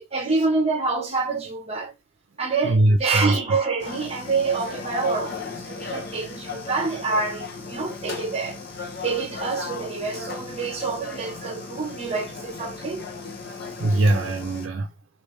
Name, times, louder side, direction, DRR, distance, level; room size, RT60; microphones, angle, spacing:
voice 1, 0.0-1.9 2.4-8.6 9.0-13.0, right 4 dB, 30° right, 1.0 m, -27 dB
voice 2, 2.6-3.4 13.5-14.9, right 1 dB, 70° right, 0.5 m, -21 dB
sound 1, 3.8-14.7, left 4 dB, 50° left, 0.8 m, -36 dB
3.3 x 2.6 x 3.2 m
head